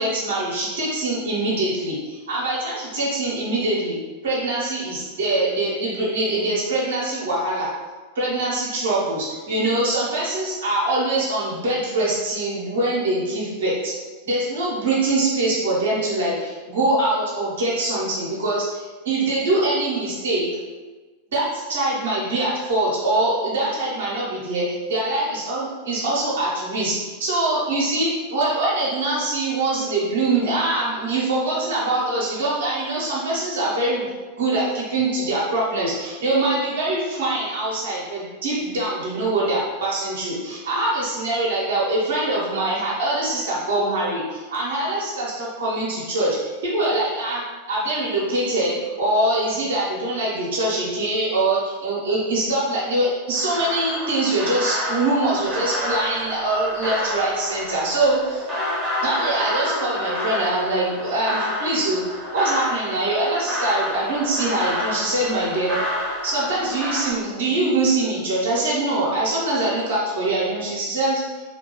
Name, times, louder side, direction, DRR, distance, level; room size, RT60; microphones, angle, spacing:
voice 1, 0.0-4.0 4.2-7.7 8.1-13.9 14.3-20.5 21.3-34.1 34.4-58.4 59.0-62.0 62.3-65.7 66.2-71.4, right 2 dB, 60° right, -6 dB, 0.8 m, -23 dB
sound 1, 53.3-67.1, left 1 dB, 15° right, 0.8 m, -29 dB
2.8 x 2.2 x 3.0 m, 1.3 s
figure-of-eight pair, 90°, 0 cm